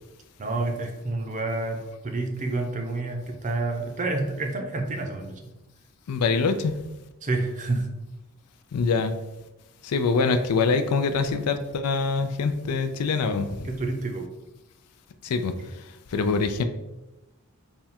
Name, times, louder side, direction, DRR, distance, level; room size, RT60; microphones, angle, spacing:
voice 1, 0.4-1.8 2.0-5.4 7.2-7.9 13.6-14.3, right 2 dB, 35° right, 3 dB, 0.6 m, -28 dB
voice 2, 6.1-6.7 8.7-9.1 9.8-13.7 15.2-15.5 16.1-16.6, left 4 dB, 80° left, 8 dB, 0.4 m, -24 dB
3.6 x 2.3 x 4.2 m, 1.0 s
head